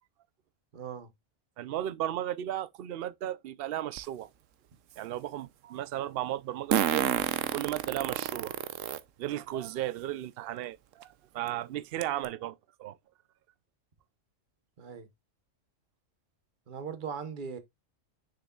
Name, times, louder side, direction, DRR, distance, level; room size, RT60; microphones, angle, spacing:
voice 1, 0.7-1.1 14.8-15.1 16.7-17.6, right 6 dB, 40° right, 1.1 m, -39 dB
voice 2, 1.6-4.3 5.0-7.2 7.5-8.6 9.2-13.0, right 13 dB, 60° right, 0.7 m, -35 dB
Fart, 4.0-4.1 6.7-9.0 9.6-9.7 11.0-11.1 11.5-11.6 12.0-12.2, right 11 dB, 80° right, 1.0 m, -29 dB
6.8 x 6.3 x 2.3 m
omnidirectional pair, 1.3 m